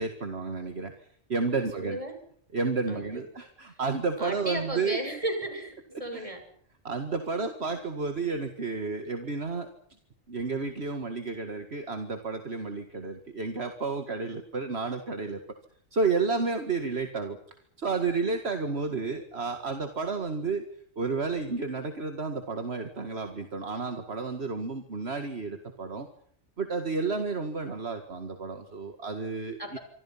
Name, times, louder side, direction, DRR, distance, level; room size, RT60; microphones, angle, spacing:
voice 1, 0.0-2.0 2.5-5.0 5.9-6.3 6.8-9.7 10.3-15.4 15.9-17.4 17.8-20.6 21.0-26.1 26.6-29.8, right 4 dB, 55° right, 7 dB, 2.2 m, -31 dB
voice 2, 1.8-2.1 2.9-3.2 4.2-6.4 29.6-29.8, right 1 dB, 25° right, 6 dB, 6.5 m, -34 dB
27.0 x 25.0 x 5.8 m, 0.64 s
omnidirectional pair, 1.3 m